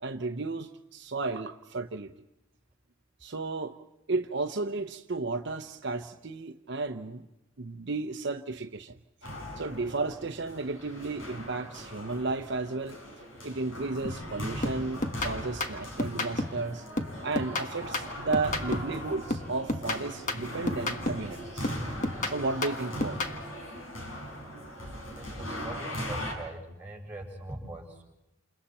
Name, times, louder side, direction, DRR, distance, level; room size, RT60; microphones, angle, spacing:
voice 1, 0.0-2.1 3.2-3.8 4.1-7.3 7.6-9.0 9.6-13.0 13.4-16.9 17.2-21.7 22.3-23.2, right 3 dB, 60° right, 5 dB, 0.8 m, -33 dB
sound 1, 9.2-26.3, equal, 80° left, 6.0 m, -40 dB
sound 2, 14.0-14.3 14.6-16.7 17.0-19.0 19.3-21.3 21.6-23.4, left 1 dB, 40° left, 1.5 m, -32 dB
voice 2, 25.1-28.0, right 2 dB, 10° right, -2 dB, 6.6 m, -42 dB
29.0 x 29.0 x 4.3 m, 0.90 s
head